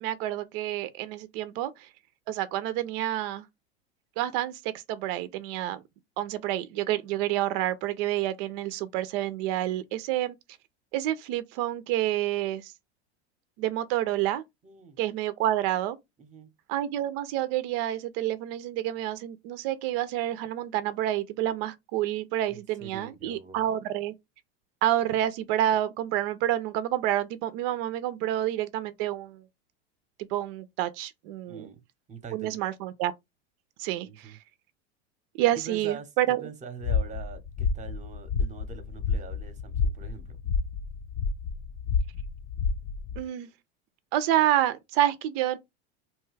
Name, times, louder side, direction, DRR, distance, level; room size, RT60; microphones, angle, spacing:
voice 1, 0.0-1.9 2.3-3.5 4.2-5.8 6.2-10.4 10.9-12.7 13.6-14.4 15.0-16.0 16.7-24.1 24.8-29.4 30.2-31.7 32.3-33.1 33.8-34.3 35.4-36.4 43.2-43.5 44.1-45.6, right 13 dB, 60° right, 0.5 m, -28 dB
voice 2, 14.6-15.0 16.2-16.5 22.5-23.7 31.5-31.8 32.1-32.6 34.0-34.4 35.6-40.4, right 5 dB, 20° right, 0.8 m, -43 dB
sound 1, 36.8-43.2, left 5 dB, 45° left, 0.5 m, -30 dB
2.9 x 2.2 x 3.2 m
hypercardioid pair, 105°, 33 cm